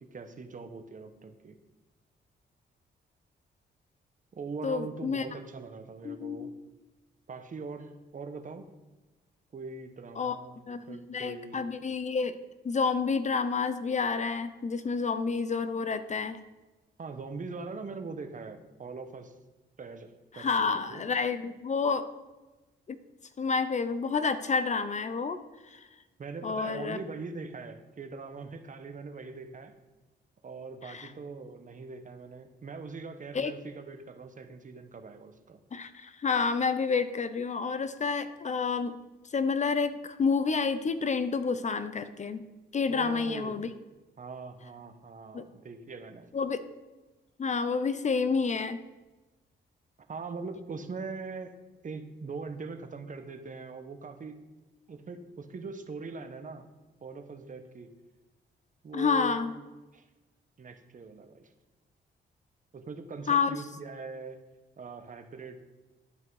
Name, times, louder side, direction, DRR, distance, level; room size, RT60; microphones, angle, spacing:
voice 1, 0.0-1.6 4.3-6.5 7.3-8.7 9.5-11.7 17.0-19.3 19.8-21.1 26.2-29.7 30.4-35.6 42.9-43.6 44.2-46.3 50.1-51.6 51.8-54.4 54.9-56.7 57.0-57.9 58.8-59.7 59.9-60.1 60.6-61.5 62.7-64.4 64.8-65.6, right 4 dB, 45° right, 8 dB, 1.0 m, -42 dB
voice 2, 4.6-5.2 6.0-6.5 10.2-10.4 10.7-12.4 12.6-16.4 20.3-22.1 22.9-23.0 23.4-25.4 25.7-25.9 26.4-27.0 30.8-31.1 33.3-33.5 35.7-39.0 39.3-42.5 42.7-43.7 45.3-45.4 46.3-46.6 47.4-48.8 58.9-59.5 63.3-63.5, left 5 dB, 40° left, 12 dB, 0.6 m, -29 dB
11.5 x 5.5 x 4.7 m, 1.2 s
cardioid pair, 85°, 19 cm